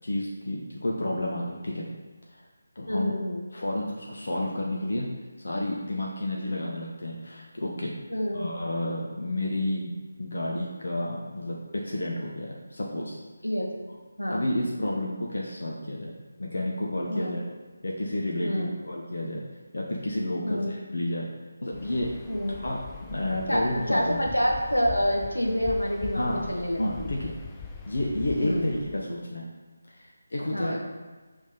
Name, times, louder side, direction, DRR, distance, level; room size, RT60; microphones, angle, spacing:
voice 1, 0.0-1.9 2.3-2.4 2.8-3.1 3.5-5.1 5.4-7.9 8.3-9.9 10.2-13.2 14.3-16.1 16.4-17.4 17.8-19.4 19.7-21.3 21.6-22.1 22.6-22.8 23.1-24.2 26.2-26.4 26.8-27.3 27.8-29.5 29.9-30.8, left 1 dB, 55° left, -2 dB, 0.8 m, -30 dB
voice 2, 2.9-3.5 8.1-8.5 13.4-13.7 14.2-14.5 17.1-17.3 18.4-18.7 20.4-20.7 22.3-22.6 23.5-27.1 28.4-28.7 30.5-30.8, equal, 85° left, -1 dB, 1.3 m, -27 dB
Waves surf, 21.7-29.0, left 4 dB, 10° left, 0.4 m, -42 dB
5.2 x 3.5 x 5.6 m, 1.3 s
figure-of-eight pair, 155°, 0 cm